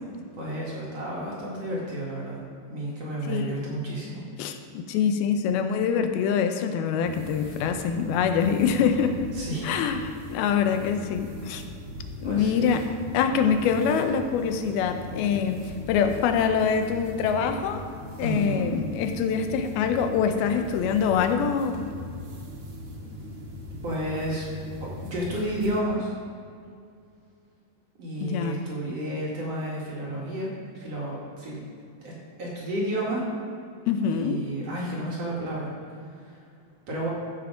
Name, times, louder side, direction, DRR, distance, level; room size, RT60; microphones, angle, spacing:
voice 1, 0.3-2.4 2.7-4.2 9.3-9.8 12.2-12.7 18.2-18.7 23.8-24.5 24.8-26.1 28.0-31.6 32.0-32.1 32.4-33.2 34.1-35.7 36.1-36.4 36.9-37.1, right 1 dB, 50° right, -5 dB, 2.5 m, -31 dB
voice 2, 4.4-9.2 9.6-11.6 12.2-12.8 13.1-15.6 15.9-17.8 18.2-21.9 28.2-28.5 33.9-34.4, left 7 dB, 85° left, 7 dB, 2.6 m, -25 dB
sound 1, 7.1-25.8, left 1 dB, 75° right, 3.4 m, -40 dB
15.0 x 5.9 x 5.0 m, 2.4 s
omnidirectional pair, 4.3 m